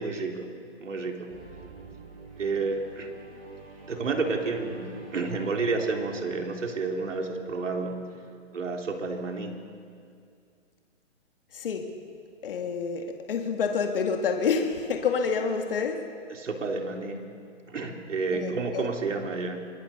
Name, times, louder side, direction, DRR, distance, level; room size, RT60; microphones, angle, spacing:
voice 1, 0.0-1.3 2.4-3.1 3.8-8.0 8.5-9.6 16.3-17.3 17.7-19.7, right 4 dB, 85° right, 2 dB, 3.8 m, -30 dB
sound 1, 1.3-7.7, right 3 dB, 30° right, 5.4 m, -47 dB
voice 2, 11.5-12.0 12.4-16.1 18.3-18.9, left 5 dB, 50° left, 3 dB, 2.0 m, -28 dB
24.0 x 21.0 x 7.0 m, 2.3 s
hypercardioid pair, 175°, 36 cm